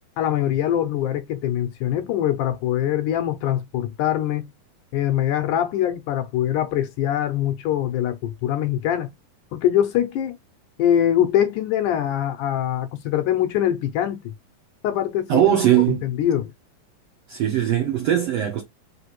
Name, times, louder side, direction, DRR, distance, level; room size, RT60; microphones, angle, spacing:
voice 1, 0.2-4.5 4.9-9.1 9.5-10.4 10.8-14.3 14.8-15.4 16.0-16.5, left 11 dB, 80° left, 2.0 m, -23 dB
voice 2, 15.3-16.0 17.3-18.6, right 11 dB, 75° right, 1.5 m, -20 dB
5.0 x 3.3 x 3.0 m
omnidirectional pair, 4.0 m